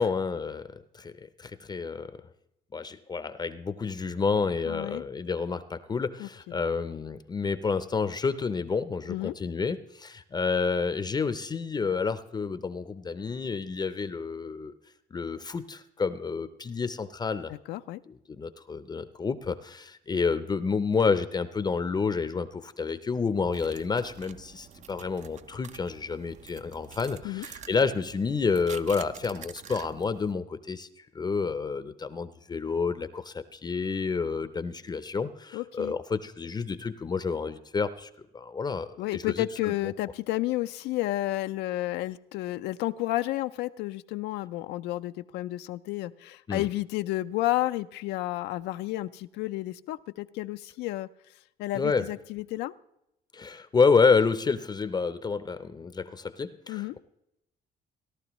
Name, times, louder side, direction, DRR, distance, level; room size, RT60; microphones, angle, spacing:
voice 1, 0.0-2.3 2.7-14.7 15.1-17.5 18.1-39.7 46.5-46.7 51.7-52.1 53.3-57.0, left 5 dB, 25° left, 12 dB, 0.5 m, -29 dB
voice 2, 4.7-5.0 6.2-6.6 9.1-9.3 17.7-18.0 27.2-27.4 35.5-35.9 39.0-51.1 51.6-52.7 56.7-56.9, left 17 dB, 85° left, 12 dB, 0.4 m, -31 dB
sound 1, 23.5-30.3, right 8 dB, 45° right, 0.5 m, -48 dB
17.5 x 11.5 x 3.0 m, 0.82 s
cardioid pair, 110°, 17 cm